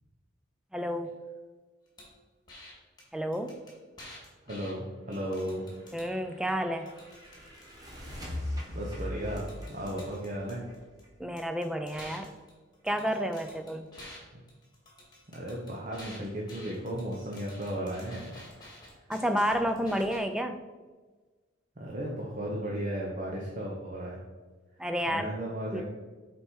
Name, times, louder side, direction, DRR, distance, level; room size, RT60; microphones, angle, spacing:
voice 1, 0.7-1.2 3.1-3.6 5.9-6.9 11.2-12.3 12.8-13.9 19.1-20.6 24.8-25.3 25.7-25.8, equal, 5° right, 7 dB, 0.4 m, -30 dB
sound 1, 2.0-2.1 2.5-2.7 3.0-3.1 3.3-4.7 5.1-6.1 6.5-7.7 9.0-9.1 9.4-11.0 11.4-14.2 14.5-20.2, left 1 dB, 20° left, 1.9 m, -50 dB
voice 2, 4.5-5.6 8.7-10.6 14.3-14.4 15.3-18.3 21.8-24.2 25.1-25.8, equal, 40° right, -3 dB, 0.9 m, -35 dB
sound 2, 5.7-11.4, left 1 dB, 20° right, 1.5 m, -41 dB
6.7 x 4.4 x 4.6 m, 1.4 s
head